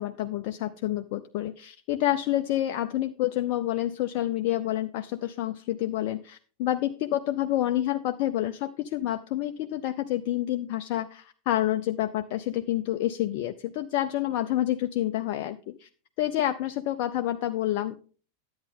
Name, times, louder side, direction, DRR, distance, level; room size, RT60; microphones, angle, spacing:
voice 1, 0.0-15.9 16.2-18.0, left 13 dB, 45° left, 8 dB, 0.5 m, -28 dB
10.5 x 8.7 x 3.5 m, 0.40 s
figure-of-eight pair, 90°, 0 cm